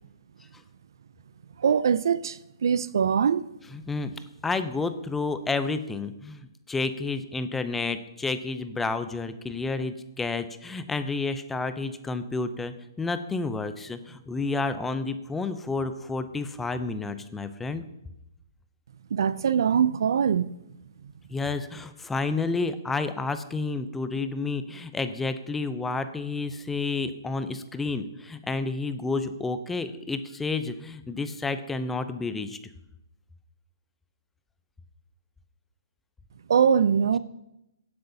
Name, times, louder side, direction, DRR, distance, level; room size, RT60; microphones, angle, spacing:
voice 1, 1.6-3.5 19.1-20.5 36.5-37.2, right 7 dB, 70° right, 0.4 m, -22 dB
voice 2, 4.4-17.8 21.3-32.6, left 3 dB, 5° left, 0.5 m, -30 dB
16.0 x 7.7 x 2.7 m
hypercardioid pair, 150°, 2 cm